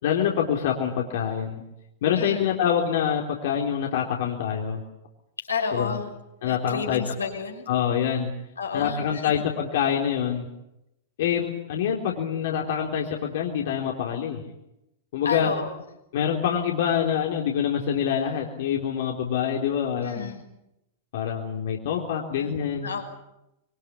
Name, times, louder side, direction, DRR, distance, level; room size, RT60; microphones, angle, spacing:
voice 1, 0.0-1.6 2.0-4.8 5.7-6.0 6.4-7.0 7.7-8.3 8.7-10.5 11.2-14.4 15.1-15.5 16.1-20.3 21.1-22.9, left 8 dB, 60° left, 0 dB, 3.8 m, -26 dB
voice 2, 2.2-2.5 5.5-6.2 6.4-7.7 8.6-9.3 15.2-15.7 20.0-20.4 22.3-22.5 22.8-23.0, left 5 dB, 85° left, 2 dB, 5.8 m, -31 dB
26.0 x 23.5 x 8.7 m, 0.89 s
hypercardioid pair, 105°, 0 cm